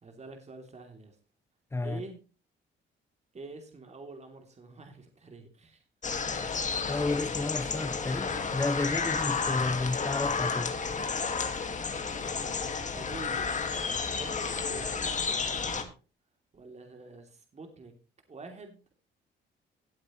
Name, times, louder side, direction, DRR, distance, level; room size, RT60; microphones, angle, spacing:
voice 1, 0.0-1.2 1.8-2.2 3.3-5.8 8.8-9.2 11.3-11.7 12.9-13.6 14.0-15.9 16.5-17.9 18.3-18.9, right 3 dB, 35° right, 3.0 m, -47 dB
sound 1, 6.0-15.8, left 5 dB, 40° left, 2.0 m, -31 dB
voice 2, 6.9-10.8, left 2 dB, 10° left, 0.5 m, -31 dB
18.0 x 8.4 x 3.1 m
cardioid pair, 90°, 20 cm